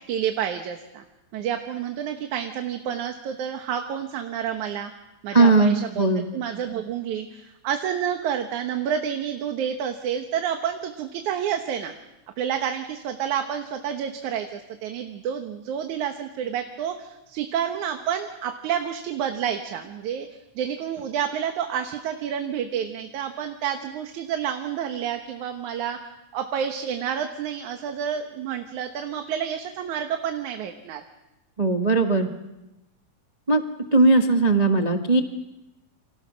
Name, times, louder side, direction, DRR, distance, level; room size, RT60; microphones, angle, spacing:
voice 1, 0.1-1.0 1.3-4.9 5.2-6.1 6.3-11.9 12.4-20.3 20.6-26.0 26.3-31.0, right 8 dB, 75° right, 5 dB, 2.6 m, -29 dB
voice 2, 5.3-6.3 31.6-32.3 33.5-33.6 33.9-35.2, right 3 dB, 50° right, 4 dB, 0.4 m, -18 dB
29.0 x 26.5 x 6.3 m, 0.96 s
omnidirectional pair, 3.5 m